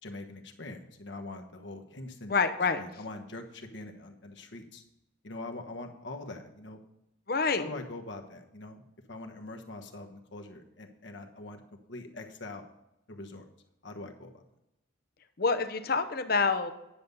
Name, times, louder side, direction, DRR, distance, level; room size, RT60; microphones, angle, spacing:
voice 1, 0.0-2.3 2.8-4.8 5.2-6.8 7.6-8.8 9.1-11.6 11.9-12.6 13.1-13.5 13.8-14.4, left 2 dB, 70° left, 4 dB, 1.2 m, -43 dB
voice 2, 2.3-2.8 7.3-7.7 15.4-16.7, left 4 dB, 50° left, 9 dB, 0.7 m, -27 dB
10.0 x 7.0 x 5.4 m, 0.89 s
head